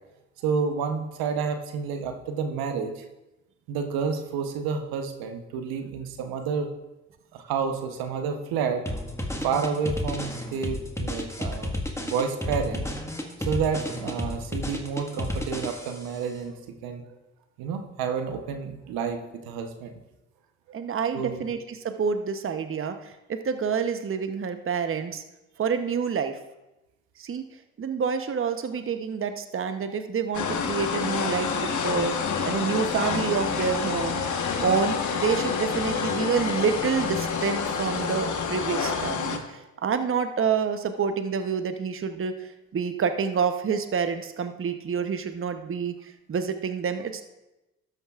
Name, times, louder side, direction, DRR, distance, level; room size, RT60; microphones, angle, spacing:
voice 1, 0.4-3.0 3.7-6.7 7.3-8.8 9.4-11.7 12.0-12.9 13.4-17.0 17.6-19.9 21.1-21.4, right 6 dB, 75° right, 6 dB, 1.0 m, -30 dB
sound 1, 8.9-16.2, left 1 dB, 10° left, 1.6 m, -32 dB
voice 2, 20.7-25.2 25.6-26.4 27.2-27.4 27.8-32.2 32.4-34.2 34.6-47.3, right 6 dB, 35° right, 8 dB, 0.9 m, -28 dB
sound 2, 30.3-39.4, left 6 dB, 55° left, 1.2 m, -28 dB
12.5 x 9.2 x 2.4 m, 0.97 s
hypercardioid pair, 50°, 36 cm